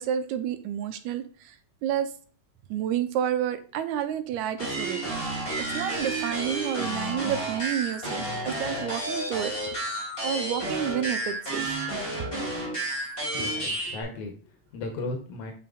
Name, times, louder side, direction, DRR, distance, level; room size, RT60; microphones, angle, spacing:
voice 1, 0.0-1.5 1.8-2.1 2.7-5.0 5.6-9.5 10.2-11.7, right 10 dB, 85° right, 10 dB, 2.0 m, -30 dB
sound 1, 4.6-14.0, right 1 dB, 20° left, 3.1 m, -31 dB
voice 2, 13.2-15.5, left 2 dB, 80° left, 3 dB, 2.4 m, -36 dB
7.5 x 5.7 x 2.4 m, 0.41 s
omnidirectional pair, 3.3 m